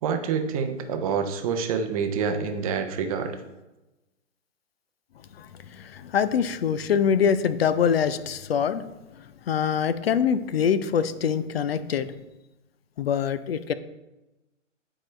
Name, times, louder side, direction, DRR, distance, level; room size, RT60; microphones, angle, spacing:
voice 1, 0.0-3.4, right 6 dB, 30° right, 7 dB, 0.6 m, -27 dB
voice 2, 5.4-8.8 9.5-12.1 13.0-13.7, left 7 dB, 55° left, 13 dB, 0.5 m, -24 dB
9.9 x 4.8 x 3.2 m, 1.0 s
figure-of-eight pair, 125°, 37 cm